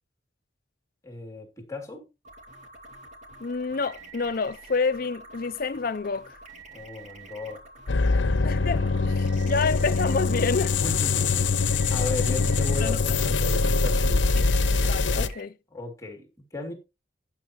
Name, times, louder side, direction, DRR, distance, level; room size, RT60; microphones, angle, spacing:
voice 1, 1.0-2.1 6.7-7.6 8.1-8.4 10.8-14.2 15.7-16.7, left 3 dB, 15° left, 2.7 m, -36 dB
sound 1, 2.2-15.4, right 3 dB, 40° right, 2.3 m, -47 dB
voice 2, 3.4-6.4 8.4-10.8 12.8-13.0 14.4-14.5 14.8-15.6, left 4 dB, 50° left, 0.6 m, -28 dB
sound 2, 7.9-15.3, left 3 dB, 80° left, 0.7 m, -23 dB
12.0 x 9.7 x 3.0 m
head